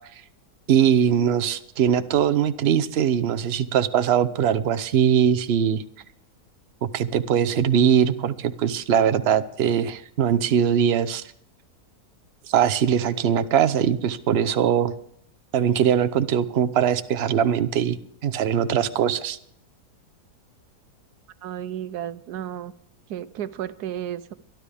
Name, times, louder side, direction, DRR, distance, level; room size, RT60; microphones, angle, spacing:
voice 1, 0.7-5.8 6.8-11.2 12.5-14.9 15.5-18.0 18.2-19.4, right 8 dB, 50° right, 13 dB, 0.8 m, -21 dB
voice 2, 21.4-22.7 23.1-24.3, right 10 dB, 80° right, 14 dB, 1.3 m, -33 dB
22.5 x 12.0 x 3.5 m, 0.69 s
omnidirectional pair, 1.7 m